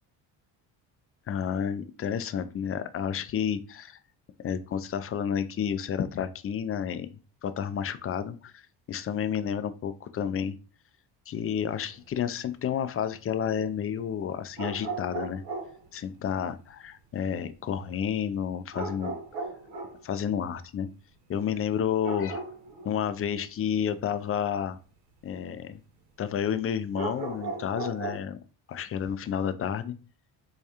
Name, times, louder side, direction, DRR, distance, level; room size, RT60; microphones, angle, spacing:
voice 1, 1.3-4.0 4.4-7.1 7.4-8.6 8.9-10.6 11.3-15.4 15.9-19.1 20.0-20.9 21.3-22.4 22.8-24.8 25.2-25.8 26.2-28.4 28.7-29.9, left 8 dB, 30° left, 11 dB, 0.4 m, -30 dB
sound 1, 11.8-12.1 14.6-15.9 18.7-20.0 22.0-23.1 26.9-28.2, right 3 dB, 60° right, 1.1 m, -36 dB
4.5 x 2.3 x 2.8 m, 0.35 s
hypercardioid pair, 65°, 49 cm